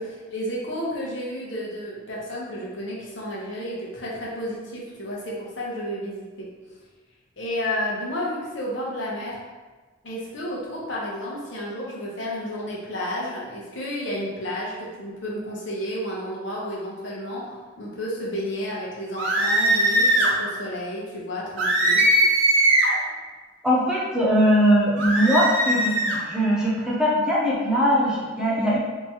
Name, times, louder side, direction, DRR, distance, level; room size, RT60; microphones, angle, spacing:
voice 1, 0.0-6.5 7.4-9.4 10.0-22.0, equal, 75° left, -4 dB, 1.0 m, -31 dB
sound 1, 19.1-20.3 21.6-23.0 25.0-26.2, right 1 dB, 70° right, 0.7 m, -20 dB
voice 2, 23.6-28.8, equal, 5° right, -6 dB, 0.5 m, -21 dB
3.5 x 2.9 x 3.0 m, 1.3 s
head